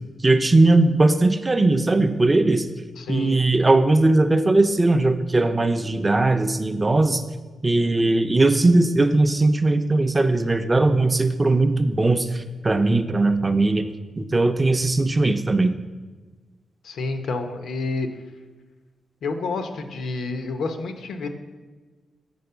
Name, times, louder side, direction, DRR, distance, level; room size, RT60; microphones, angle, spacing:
voice 1, 0.2-2.7 3.1-7.2 7.6-13.8 14.2-15.7, right 2 dB, 20° right, 8 dB, 0.4 m, -19 dB
voice 2, 3.0-3.4 16.8-18.1 19.2-21.3, left 3 dB, 90° left, 7 dB, 0.7 m, -29 dB
7.0 x 4.3 x 6.7 m, 1.3 s
wide cardioid pair, 140°, 0 cm